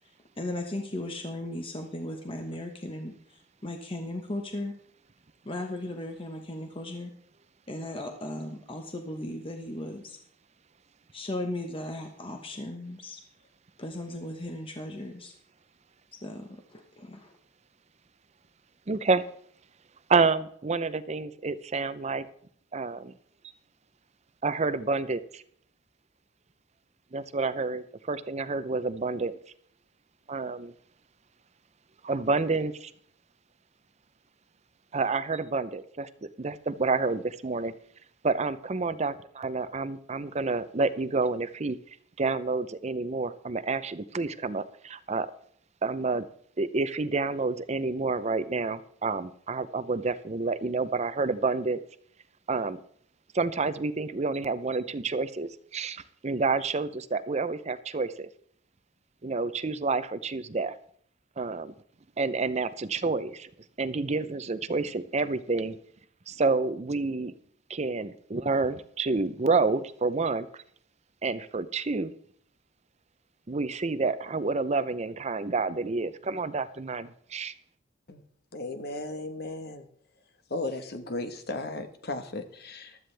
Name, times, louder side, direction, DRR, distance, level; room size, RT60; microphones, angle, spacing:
voice 1, 0.4-4.7 5.4-7.1 7.7-10.2 11.1-13.2 13.8-15.3 16.2-17.3, left 1 dB, 30° left, 3 dB, 1.1 m, -36 dB
voice 2, 18.9-19.2 20.1-22.3 22.7-23.1 24.4-25.4 27.1-29.4 30.3-30.7 32.0-32.9 34.9-37.7 38.2-41.8 42.2-45.3 45.8-46.3 46.6-51.8 52.5-52.8 53.3-58.3 59.2-60.7 61.4-61.7 62.2-63.5 63.8-65.8 66.3-67.3 67.7-70.5 71.2-72.1 73.5-77.5, right 3 dB, 35° right, 14 dB, 0.6 m, -29 dB
voice 3, 78.5-79.9 80.5-83.0, left 2 dB, 55° left, 8 dB, 1.3 m, -35 dB
15.5 x 12.0 x 3.4 m, 0.62 s
head